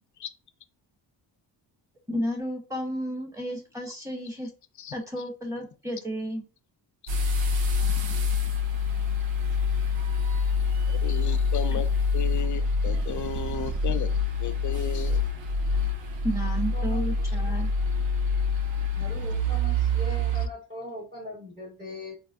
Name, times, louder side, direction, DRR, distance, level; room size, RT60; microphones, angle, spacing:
voice 1, 2.1-4.5 4.9-6.4 11.7-11.8 16.2-17.7, equal, 5° right, 1.2 m, -32 dB
sound 1, 7.1-20.5, left 3 dB, 75° right, 0.7 m, -26 dB
voice 2, 7.9-8.2 10.9-11.9 12.1-14.1 14.4-15.2, left 9 dB, 45° left, 0.4 m, -34 dB
voice 3, 16.7-17.0 18.9-22.1, left 1 dB, 20° right, 1.4 m, -40 dB
4.1 x 2.1 x 2.4 m
cardioid pair, 75°, 46 cm